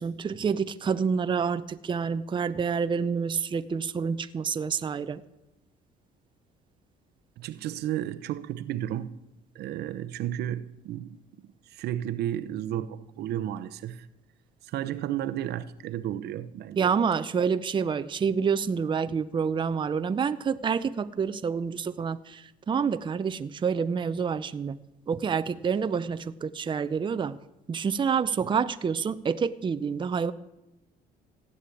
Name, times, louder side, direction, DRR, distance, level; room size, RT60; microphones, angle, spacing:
voice 1, 0.0-5.2 16.8-22.4 22.7-24.8 25.1-27.4 27.7-30.3, right 6 dB, 30° right, 0.7 m, -28 dB
voice 2, 7.4-9.1 9.5-11.2 11.7-14.1 14.7-16.9, right 11 dB, 75° right, 0.9 m, -33 dB
16.0 x 9.5 x 8.4 m
cardioid pair, 110°, 17 cm